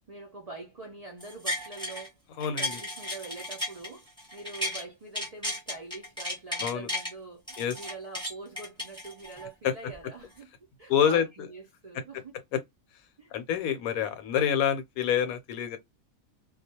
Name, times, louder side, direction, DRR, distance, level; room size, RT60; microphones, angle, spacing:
voice 1, 0.1-2.1 2.6-12.3 13.2-13.3, right 3 dB, 85° right, 0.3 m, -44 dB
sound 1, 1.2-2.1 2.4-4.8 5.1-7.1 7.5-9.5 9.9-10.0, left 1 dB, 5° left, 0.7 m, -34 dB
voice 2, 2.4-2.8 6.6-6.9 7.6-7.8 9.6-9.7 10.9-11.2 12.5-12.6 13.3-15.8, left 9 dB, 80° left, 1.0 m, -27 dB
2.3 x 2.1 x 2.8 m
omnidirectional pair, 1.5 m